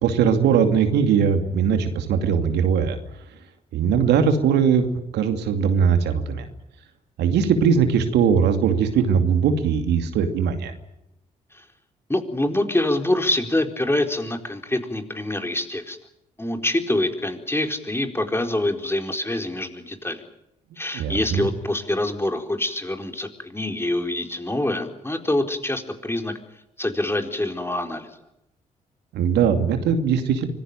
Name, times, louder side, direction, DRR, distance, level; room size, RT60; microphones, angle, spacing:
voice 1, 0.0-3.0 3.7-6.5 7.2-10.7 20.9-21.5 29.1-30.5, right 7 dB, 75° right, 7 dB, 2.6 m, -20 dB
voice 2, 12.1-16.0 16.4-20.2 20.8-26.3 26.8-28.1, left 1 dB, 15° left, 5 dB, 4.5 m, -25 dB
25.0 x 17.5 x 9.0 m, 0.84 s
hypercardioid pair, 45°, 17 cm